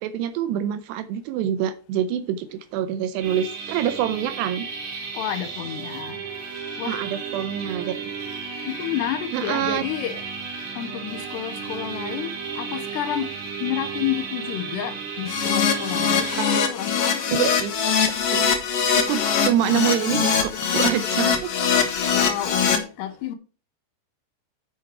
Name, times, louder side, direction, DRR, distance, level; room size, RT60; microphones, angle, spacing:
voice 1, 0.0-4.7 6.9-8.1 9.3-9.8 16.4-16.6 17.3-17.7 18.3-18.5 19.0-20.3 20.7-21.5, right 10 dB, 80° right, 2.6 m, -26 dB
sound 1, 3.2-16.6, right 5 dB, 60° right, 4.1 m, -34 dB
voice 2, 5.1-6.2 6.8-7.1 8.7-10.3 10.8-17.5 19.2-19.7 22.1-23.4, left 11 dB, 80° left, 2.9 m, -30 dB
Keyboard (musical), 15.3-22.8, left 6 dB, 65° left, 1.5 m, -22 dB
8.5 x 7.5 x 4.6 m
omnidirectional pair, 5.2 m